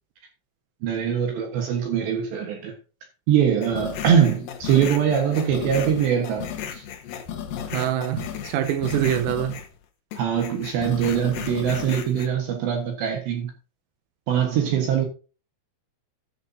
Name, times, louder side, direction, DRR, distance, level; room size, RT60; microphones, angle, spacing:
voice 1, 0.8-2.8 3.3-6.9 10.2-13.5 14.3-15.1, right 8 dB, 70° right, 3.1 m, -22 dB
sound 1, 3.6-9.8 10.1-12.3, left 8 dB, 75° left, 2.1 m, -34 dB
voice 2, 7.7-9.6, right 11 dB, 85° right, 3.5 m, -25 dB
13.0 x 11.0 x 2.7 m
omnidirectional pair, 6.0 m